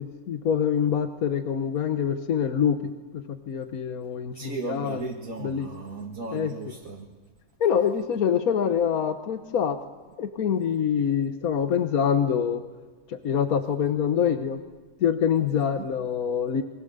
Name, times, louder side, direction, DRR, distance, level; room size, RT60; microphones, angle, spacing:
voice 1, 0.0-2.8 3.1-5.1 5.4-5.7 6.3-6.5 7.6-9.8 10.2-12.6 13.1-14.6 15.0-16.6, left 8 dB, 85° left, 8 dB, 1.5 m, -25 dB
voice 2, 4.3-7.1 15.5-15.8, right 3 dB, 70° right, 0 dB, 2.5 m, -36 dB
29.0 x 24.0 x 6.7 m, 1.3 s
omnidirectional pair, 1.5 m